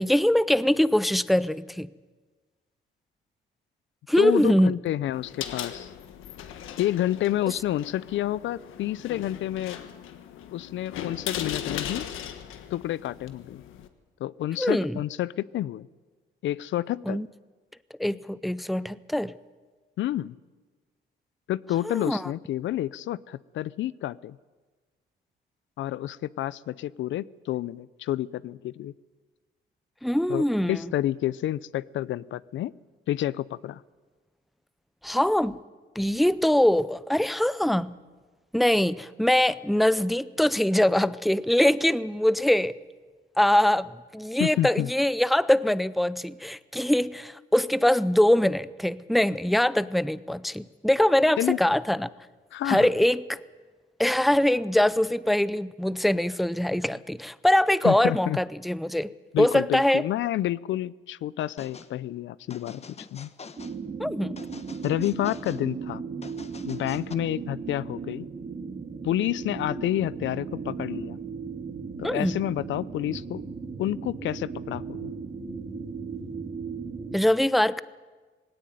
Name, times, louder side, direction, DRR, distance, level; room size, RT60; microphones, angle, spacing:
voice 1, 0.0-1.9 4.1-4.8 14.6-15.0 17.1-17.3 18.0-19.3 21.9-22.2 30.0-30.8 35.0-35.6 36.0-37.9 38.5-42.7 43.4-52.1 52.7-53.4 54.0-59.1 59.4-60.0 64.0-64.4 72.0-72.4 77.1-77.8, left 1 dB, ahead, 17 dB, 0.5 m, -23 dB
voice 2, 4.2-5.9 6.8-9.8 10.5-12.1 12.7-13.6 14.2-15.9 16.4-17.2 20.0-20.4 21.5-24.4 25.8-28.9 30.3-32.7 33.1-33.8 44.4-44.9 51.4-51.6 52.5-52.9 57.8-58.4 59.3-63.3 64.8-66.0 66.6-68.3 69.0-71.2 72.0-73.4 73.8-75.1, left 13 dB, 70° left, 20 dB, 0.5 m, -29 dB
sound 1, 5.1-13.9, left 10 dB, 90° left, 1.5 m, -38 dB
sound 2, 61.6-61.9 62.5-63.8 64.4-65.6 66.2-67.1, left 5 dB, 30° left, 1.2 m, -45 dB
sound 3, 63.6-77.2, right 5 dB, 40° right, 2.3 m, -36 dB
18.5 x 17.0 x 9.4 m, 1.4 s
cardioid pair, 90°, 20 cm